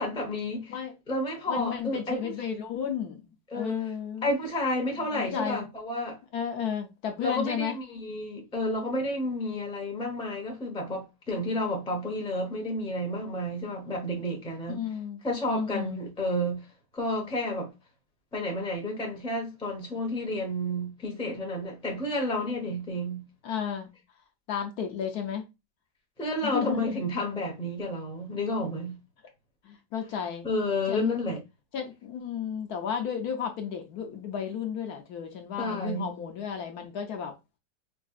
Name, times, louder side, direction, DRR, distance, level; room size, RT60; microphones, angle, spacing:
voice 1, 0.0-0.8 1.1-2.3 3.5-3.8 4.2-6.2 7.2-14.8 15.2-16.7 16.9-17.7 18.3-23.2 26.2-29.0 30.4-31.4 35.6-36.1, left 1 dB, 5° left, 0.6 m, -31 dB
voice 2, 1.5-4.3 5.1-5.6 6.3-7.8 14.7-15.2 15.5-16.0 23.4-23.9 24.5-25.4 26.4-27.1 29.6-30.5 30.9-31.2 31.7-37.3, left 8 dB, 70° left, 1.1 m, -33 dB
4.7 x 2.6 x 2.4 m
omnidirectional pair, 1.9 m